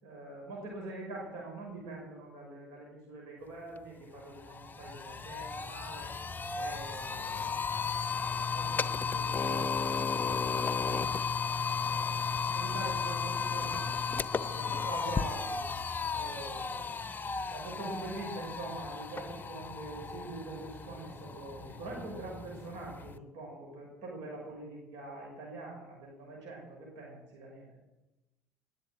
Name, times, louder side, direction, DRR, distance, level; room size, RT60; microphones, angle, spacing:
voice 1, 0.0-6.1 6.5-7.8 8.2-11.1 11.7-15.6 16.1-27.7, right 2 dB, 70° right, -1 dB, 5.8 m, -44 dB
sound 1, 3.8-3.9 4.2-23.2, left 5 dB, 25° left, 0.9 m, -34 dB
19.5 x 8.1 x 8.9 m, 1.0 s
hypercardioid pair, 65°, 8 cm